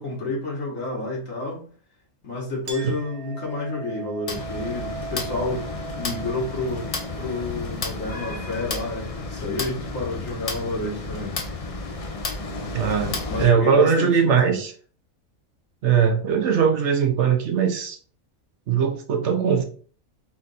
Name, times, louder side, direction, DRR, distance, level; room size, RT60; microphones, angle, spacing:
voice 1, 0.0-1.7 2.2-5.7 6.0-11.4 13.3-14.5, left 2 dB, 70° left, -3 dB, 2.0 m, -30 dB
Chink clink, 2.7-9.7, right 7 dB, 85° right, 1.3 m, -41 dB
sound 1, 4.3-13.4, left 3 dB, 45° left, 0.5 m, -32 dB
voice 2, 12.7-14.7 15.8-18.0 18.7-19.6, right 7 dB, 65° right, 5 dB, 1.0 m, -20 dB
4.2 x 2.6 x 4.1 m, 0.43 s
omnidirectional pair, 1.4 m